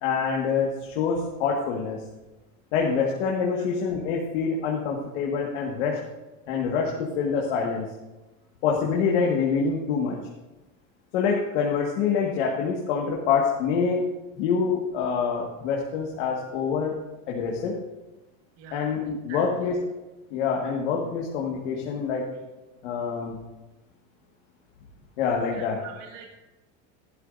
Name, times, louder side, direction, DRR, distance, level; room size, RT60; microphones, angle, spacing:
voice 1, 0.0-2.0 2.7-6.0 6.5-7.9 8.6-10.2 11.1-14.0 14.3-17.0 17.3-17.8 18.7-19.8 20.3-22.3 22.8-23.4 25.2-25.8, left 6 dB, 70° left, -1 dB, 1.7 m, -26 dB
voice 2, 18.6-19.5 25.5-26.3, right 7 dB, 45° right, 0 dB, 1.6 m, -45 dB
15.0 x 12.5 x 2.6 m, 1.1 s
cardioid pair, 175°, 37 cm